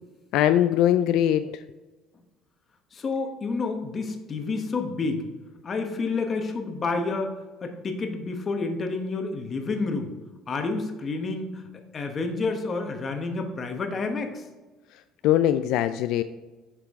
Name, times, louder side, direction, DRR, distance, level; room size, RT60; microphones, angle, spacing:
voice 1, 0.3-1.6 14.9-16.2, left 11 dB, 70° left, 10 dB, 0.3 m, -22 dB
voice 2, 2.9-5.3 5.6-10.1 10.5-11.6 11.9-14.4, left 3 dB, 25° left, 5 dB, 1.0 m, -29 dB
7.9 x 5.9 x 3.6 m, 1.2 s
cardioid pair, 150°, 0 cm